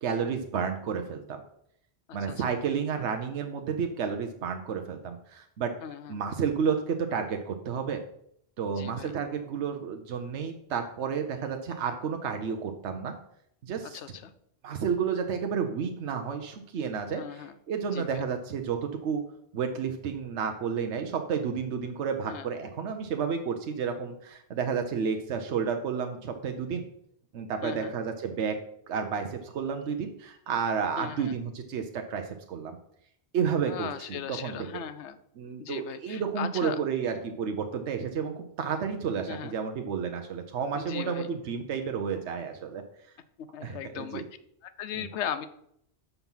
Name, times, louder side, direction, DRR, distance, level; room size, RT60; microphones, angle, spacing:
voice 1, 0.0-1.4 2.1-5.7 6.1-8.0 8.6-13.1 13.6-14.0 14.6-19.2 19.5-26.8 27.3-28.6 28.9-32.8 33.3-34.6 35.4-42.8 43.6-44.2 44.9-45.1, right 6 dB, 80° right, 5 dB, 1.0 m, -31 dB
voice 2, 2.1-2.4 5.8-6.2 8.7-9.1 13.8-14.3 17.1-17.5 17.9-18.2 22.3-22.5 27.6-27.9 31.0-31.4 33.6-35.2 35.6-36.8 39.3-39.5 40.8-41.3 43.4-44.2 44.6-45.5, left 9 dB, 80° left, 12 dB, 1.0 m, -38 dB
6.9 x 5.9 x 5.5 m, 0.71 s
omnidirectional pair, 1.1 m